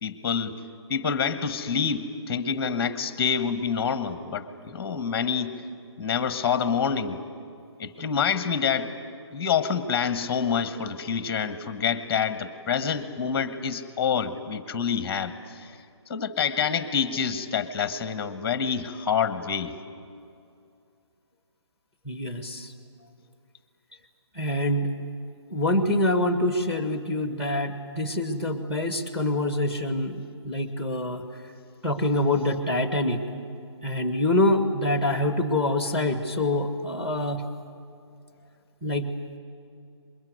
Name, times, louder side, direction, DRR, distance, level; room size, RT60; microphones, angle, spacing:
voice 1, 0.0-0.6 0.9-5.6 6.0-7.2 7.8-8.9 9.3-15.7 16.1-19.7, left 6 dB, 15° left, 11 dB, 1.3 m, -27 dB
voice 2, 22.0-22.7 24.3-24.9 25.5-31.2 31.8-33.2 33.8-37.4 38.8-39.1, left 1 dB, 5° right, 7 dB, 1.6 m, -25 dB
23.5 x 22.0 x 9.5 m, 2.5 s
hypercardioid pair, 160°, 15 cm